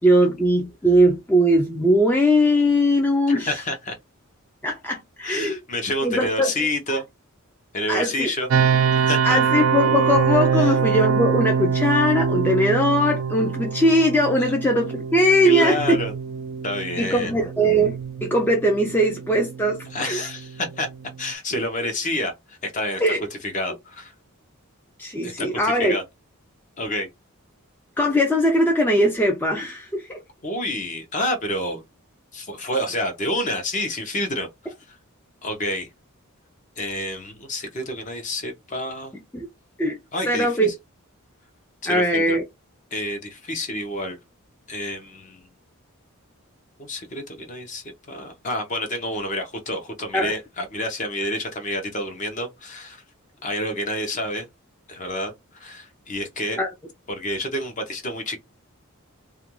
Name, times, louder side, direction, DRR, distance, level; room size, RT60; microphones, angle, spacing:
voice 1, 0.0-3.6 4.6-5.6 6.0-6.5 7.9-8.3 9.2-16.0 17.0-20.2 23.0-23.3 25.0-26.0 28.0-30.2 39.3-39.5 39.8-40.0 40.3-40.7 41.9-42.4 50.1-50.3 56.6-56.7, equal, 10° left, 0.3 m, -20 dB
voice 2, 3.3-3.9 5.2-7.0 7.7-8.5 8.9-9.4 10.5-10.7 14.5-14.6 15.4-16.1 16.6-17.3 19.9-20.9 21.2-23.0 23.4-24.1 25.2-26.0 26.8-27.1 30.4-31.8 32.3-35.0 35.4-35.9 36.8-39.1 40.1-40.7 41.8-42.4 42.9-44.2 44.7-45.4 46.8-53.0 53.4-54.4 54.9-56.6 57.1-58.4, left 1 dB, 35° left, 0.7 m, -28 dB
sound 1, 8.5-21.3, right 6 dB, 70° right, 0.4 m, -24 dB
2.4 x 2.2 x 3.0 m
head